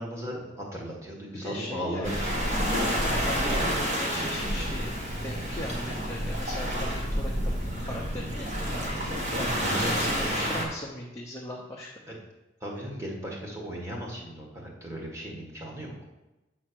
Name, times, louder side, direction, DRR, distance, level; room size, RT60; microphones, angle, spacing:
voice 1, 0.0-2.9 9.3-10.1 12.6-15.9, equal, 15° right, -2 dB, 1.6 m, -36 dB
voice 2, 1.4-2.3 2.9-4.9 5.2-7.5 7.8-8.5 9.4-11.9, left 1 dB, 15° left, -3 dB, 0.8 m, -38 dB
Waves surf, 2.0-10.6, equal, 35° right, 1.7 m, -29 dB
7.7 x 4.3 x 6.2 m, 1.0 s
head